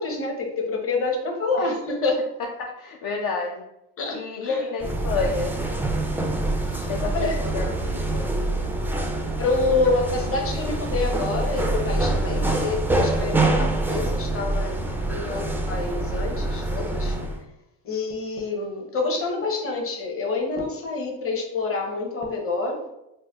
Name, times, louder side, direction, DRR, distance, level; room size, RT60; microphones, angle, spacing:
voice 1, 0.0-2.3 4.0-4.6 6.6-7.4 9.4-17.2 17.8-22.9, left 3 dB, 40° left, 2 dB, 0.8 m, -27 dB
voice 2, 2.4-3.6 4.1-5.6 6.9-8.3, left 4 dB, 65° left, 0 dB, 0.5 m, -29 dB
sound 1, 4.8-17.4, right 2 dB, 5° right, 0.3 m, -25 dB
4.2 x 2.1 x 2.3 m, 0.86 s
supercardioid pair, 85°, 36 cm